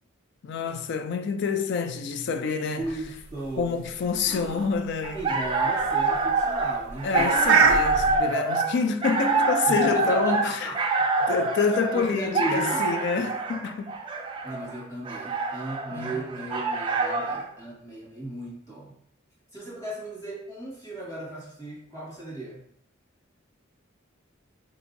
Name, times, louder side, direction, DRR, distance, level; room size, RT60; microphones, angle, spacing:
voice 1, 0.4-2.8 3.6-5.2 7.0-10.7 11.3-13.9 15.9-16.1, left 5 dB, 60° left, 0.3 m, -27 dB
voice 2, 2.8-3.8 5.1-7.3 8.1-8.4 9.7-10.8 11.2-11.3 11.9-12.8 14.4-18.9 19.5-22.6, right 2 dB, 15° left, 1.2 m, -36 dB
sound 1, 2.9-8.2, right 5 dB, 90° right, 0.4 m, -27 dB
sound 2, 5.0-17.5, right 3 dB, 25° right, 0.3 m, -26 dB
3.8 x 2.6 x 2.5 m
head